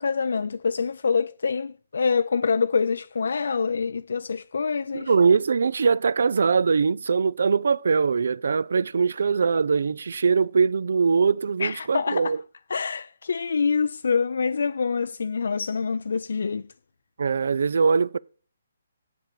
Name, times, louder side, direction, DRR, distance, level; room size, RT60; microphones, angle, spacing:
voice 1, 0.0-5.1 11.6-12.3 12.7-16.7, left 5 dB, 75° left, 0.4 m, -26 dB
voice 2, 4.9-12.4 17.2-18.2, right 5 dB, 70° right, 0.4 m, -22 dB
7.8 x 7.3 x 6.8 m
hypercardioid pair, 160°, 0 cm